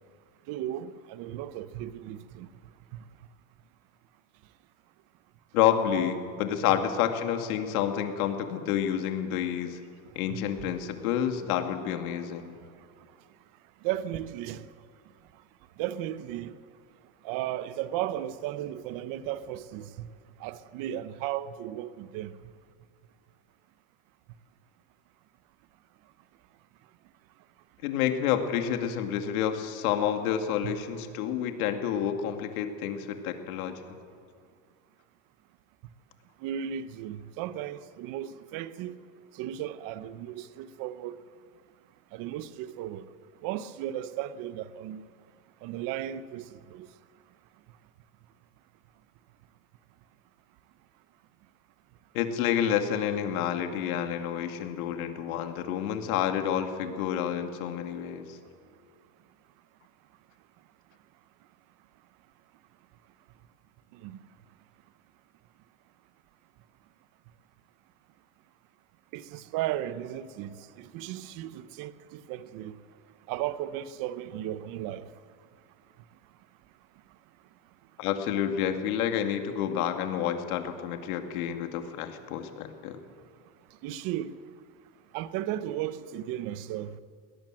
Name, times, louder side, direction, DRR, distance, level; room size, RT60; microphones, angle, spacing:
voice 1, 0.5-2.5 10.3-10.7 13.8-14.6 15.8-16.5 17.2-20.1 20.4-22.3 30.6-30.7 36.4-38.9 39.4-41.2 42.1-43.1 43.4-45.0 45.6-46.4 46.7-46.9 64.0-64.2 69.1-72.8 73.3-75.1 83.8-84.3 85.1-86.9, right 12 dB, 50° right, 1.0 m, -35 dB
voice 2, 5.5-9.8 10.2-12.6 27.8-33.8 52.1-58.4 78.0-83.0, left 9 dB, 90° left, 2.4 m, -29 dB
22.0 x 18.5 x 7.7 m
cardioid pair, 150°, 42 cm